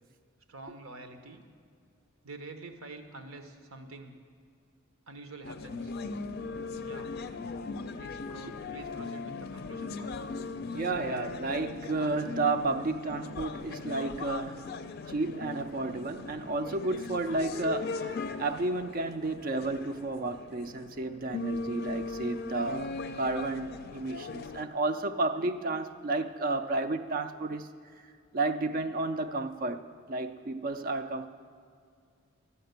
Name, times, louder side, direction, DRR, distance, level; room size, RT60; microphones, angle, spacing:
voice 1, 0.5-1.4 2.2-4.2 5.1-5.9 6.8-7.1 8.0-10.1, right 2 dB, 85° right, 7 dB, 1.0 m, -47 dB
sound 1, 5.4-24.6, left 4 dB, 50° left, 0.4 m, -39 dB
voice 2, 10.7-14.7 15.1-18.1 18.4-27.7 28.3-29.8 30.1-31.3, right 2 dB, 40° right, 9 dB, 0.4 m, -32 dB
12.0 x 5.6 x 8.1 m, 2.2 s
head